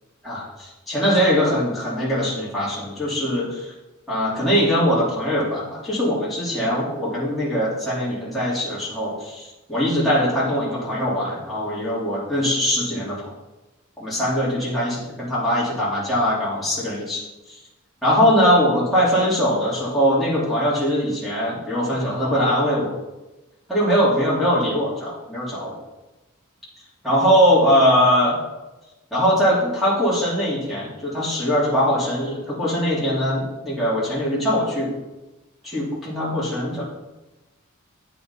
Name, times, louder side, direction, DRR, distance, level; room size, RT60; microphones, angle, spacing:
voice 1, 0.2-3.7 4.1-13.2 14.0-17.2 17.5-17.6 18.0-22.9 23.7-25.8 27.0-28.4 29.1-34.9 35.6-36.8, equal, ahead, -8 dB, 3.0 m, -21 dB
8.9 x 5.8 x 5.6 m, 1.1 s
head